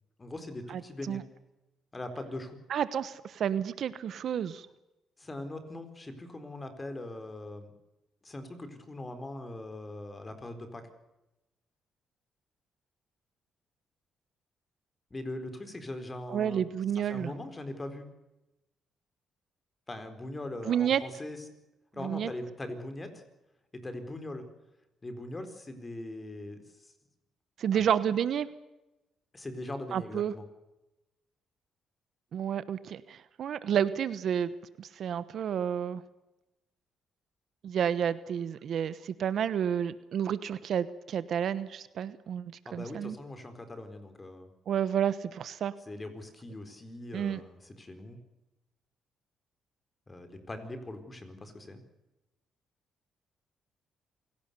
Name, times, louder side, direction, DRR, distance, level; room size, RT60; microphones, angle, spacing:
voice 1, 0.2-1.2 1.9-2.6 5.2-7.7 8.2-10.9 15.1-16.7 17.0-18.1 19.9-21.4 21.9-23.2 23.7-24.5 25.0-26.9 27.7-27.9 29.3-30.5 32.8-32.9 42.7-44.5 45.9-48.2 50.1-51.8, left 1 dB, 25° left, 8 dB, 4.4 m, -41 dB
voice 2, 2.7-4.7 16.3-17.3 20.7-21.0 22.0-22.3 27.6-28.5 29.9-30.3 32.3-34.5 34.8-36.0 37.6-43.2 44.7-45.7 47.1-47.4, right 9 dB, 65° right, 15 dB, 1.1 m, -30 dB
27.0 x 17.5 x 6.9 m, 0.96 s
cardioid pair, 90°, 0 cm